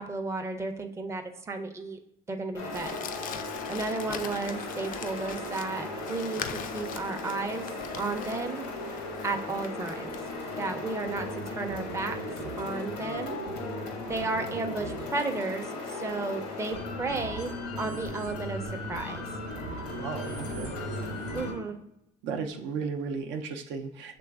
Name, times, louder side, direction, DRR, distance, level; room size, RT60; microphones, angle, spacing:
voice 1, 0.0-2.0 2.3-2.9 3.7-7.7 8.0-8.6 9.2-10.1 10.5-12.2 12.6-13.4 14.1-19.3 21.3-21.8, right 3 dB, 15° right, 5 dB, 0.5 m, -33 dB
sound 1, 2.5-21.5, left 1 dB, 90° left, 1.0 m, -36 dB
Crumpling crinkling, 2.7-10.3, left 8 dB, 45° left, 0.4 m, -42 dB
voice 2, 20.0-20.7 22.2-24.2, right 5 dB, 70° right, 4 dB, 0.5 m, -35 dB
6.7 x 3.1 x 2.3 m, 0.80 s
hypercardioid pair, 70°, 19 cm